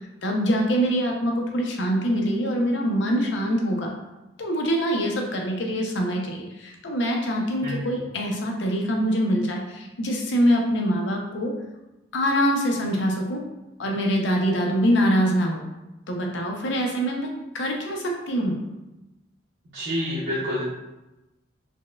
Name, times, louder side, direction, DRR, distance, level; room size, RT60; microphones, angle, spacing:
voice 1, 0.2-3.9 4.4-11.5 12.1-13.4 13.8-15.6 16.1-17.3 17.5-18.6, equal, 70° left, 1 dB, 0.6 m, -24 dB
voice 2, 19.7-20.7, equal, 70° right, -10 dB, 0.7 m, -27 dB
4.1 x 2.1 x 2.3 m, 1.0 s
head